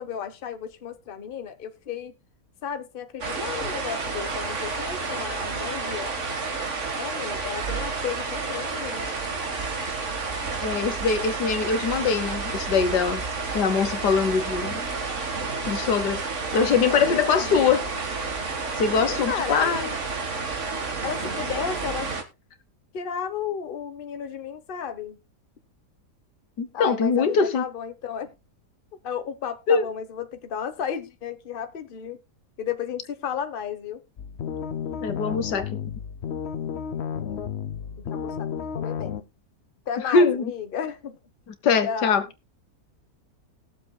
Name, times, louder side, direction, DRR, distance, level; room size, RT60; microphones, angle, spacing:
voice 1, 0.0-2.1 2.6-6.1 7.0-9.1 16.5-17.6 19.0-19.8 21.0-22.2 22.9-25.2 26.7-28.3 29.0-32.2 32.6-34.0 37.1-37.4 38.0-39.3 39.9-41.2 41.8-42.3, left 7 dB, 35° left, 1.1 m, -33 dB
sound 1, 3.2-22.2, right 4 dB, 45° right, 1.8 m, -30 dB
voice 2, 10.6-13.2 13.5-14.8 15.7-16.2 16.5-17.8 18.8-19.9 26.6-27.6 29.7-29.8 35.0-35.6 40.0-40.5 41.6-42.2, left 5 dB, 80° left, 1.7 m, -22 dB
sound 2, 34.2-39.2, left 7 dB, 55° left, 0.7 m, -32 dB
20.0 x 7.4 x 2.2 m
omnidirectional pair, 1.8 m